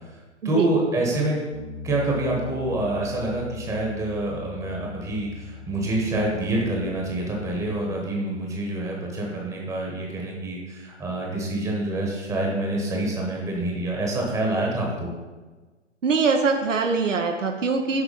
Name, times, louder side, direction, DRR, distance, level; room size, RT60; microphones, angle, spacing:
voice 1, 0.4-1.4 1.8-15.1, right 2 dB, 10° right, -1 dB, 1.0 m, -27 dB
Bass guitar, 1.5-7.8, left 5 dB, 60° left, 1.1 m, -40 dB
voice 2, 16.0-18.0, right 4 dB, 90° right, 4 dB, 0.8 m, -23 dB
6.7 x 4.2 x 5.1 m, 1.3 s
figure-of-eight pair, 120°, 37 cm